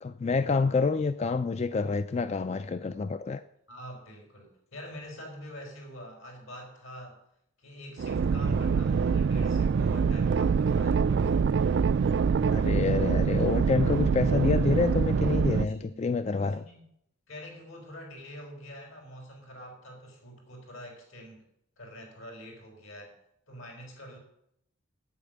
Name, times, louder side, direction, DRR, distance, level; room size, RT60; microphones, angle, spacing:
voice 1, 0.0-3.4 12.5-16.6, left 4 dB, 30° left, 11 dB, 0.3 m, -28 dB
voice 2, 3.7-7.2 7.6-11.5 15.8-16.0 16.4-16.9 17.3-21.4 21.8-23.2 23.5-24.2, equal, 80° left, 1 dB, 4.7 m, -45 dB
sound 1, 8.0-15.7, right 5 dB, 55° right, 0.3 m, -25 dB
8.8 x 8.5 x 7.9 m, 0.75 s
head